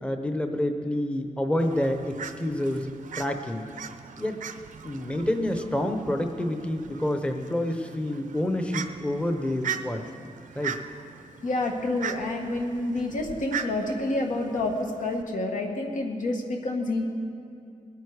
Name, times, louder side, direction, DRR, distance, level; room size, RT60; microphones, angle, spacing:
voice 1, 0.0-3.7 4.2-4.4 4.8-10.0 10.6-10.8, left 1 dB, 10° left, 6 dB, 0.7 m, -28 dB
Fowl, 1.6-15.2, right 7 dB, 80° right, 0.6 m, -40 dB
voice 2, 11.4-17.0, left 2 dB, 90° left, 1 dB, 1.7 m, -28 dB
21.5 x 9.3 x 4.8 m, 2.5 s
wide cardioid pair, 175°, 13 cm